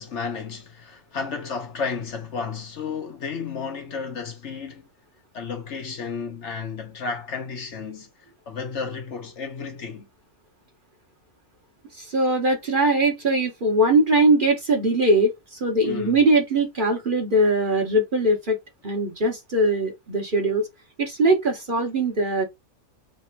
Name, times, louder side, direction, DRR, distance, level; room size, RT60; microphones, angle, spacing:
voice 1, 0.0-4.9 5.3-8.1 8.5-10.1 15.8-16.2, left 5 dB, 60° left, 1.2 m, -32 dB
voice 2, 12.0-18.6 18.8-20.7 21.0-22.4, right 1 dB, 40° right, 1.1 m, -21 dB
3.4 x 2.7 x 4.3 m
omnidirectional pair, 1.4 m